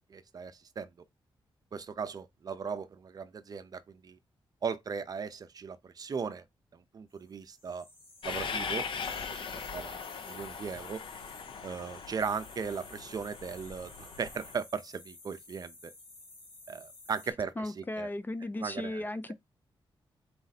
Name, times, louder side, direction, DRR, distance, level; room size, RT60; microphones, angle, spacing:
voice 1, 0.1-0.9 1.7-4.2 4.6-6.4 6.7-7.9 8.2-8.9 9.1-10.0 10.3-11.0 11.6-15.9 16.7-18.1 18.6-19.1, right 6 dB, 45° right, 0.5 m, -38 dB
sound 1, 7.5-17.3, left 2 dB, 85° left, 2.3 m, -52 dB
Train, 8.2-14.5, left 6 dB, 65° left, 0.7 m, -40 dB
voice 2, 17.6-19.3, left 1 dB, 20° left, 0.3 m, -36 dB
4.1 x 2.6 x 4.0 m
wide cardioid pair, 125°, 9 cm